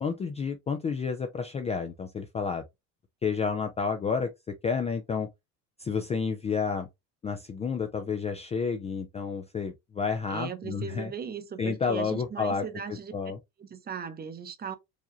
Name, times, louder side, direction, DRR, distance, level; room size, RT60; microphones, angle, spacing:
voice 1, 0.0-2.6 3.2-4.3 4.6-5.3 5.8-6.9 7.2-11.1 11.6-13.4, left 5 dB, 20° left, 0.3 m, -30 dB
voice 2, 10.3-13.1 13.6-14.8, right 7 dB, 25° right, 0.7 m, -38 dB
4.8 x 2.9 x 2.6 m
cardioid pair, 135°, 36 cm